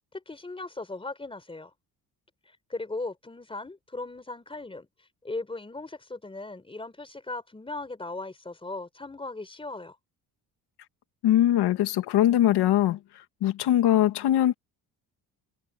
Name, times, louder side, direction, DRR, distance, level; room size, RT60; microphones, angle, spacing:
voice 1, 0.1-1.7 2.5-4.9 5.2-10.0, left 2 dB, 15° left, 4.1 m, -38 dB
voice 2, 11.2-13.0 13.4-14.5, left 12 dB, 80° left, 1.8 m, -21 dB
cardioid pair, 140°, 39 cm